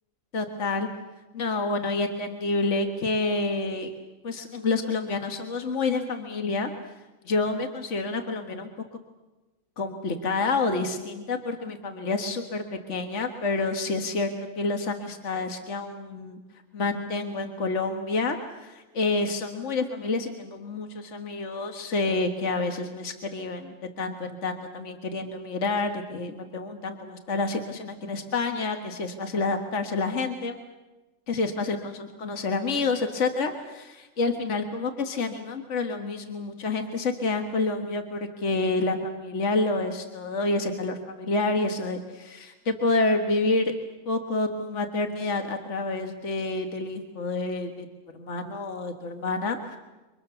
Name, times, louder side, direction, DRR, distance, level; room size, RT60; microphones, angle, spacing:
voice 1, 0.3-0.9 1.3-3.9 4.2-6.7 7.3-8.7 9.8-14.3 14.6-16.4 16.7-30.6 31.3-43.7 44.1-47.9 48.1-49.8, left 3 dB, 60° left, 5 dB, 1.9 m, -28 dB
28.5 x 25.0 x 7.0 m, 1.1 s
omnidirectional pair, 1.4 m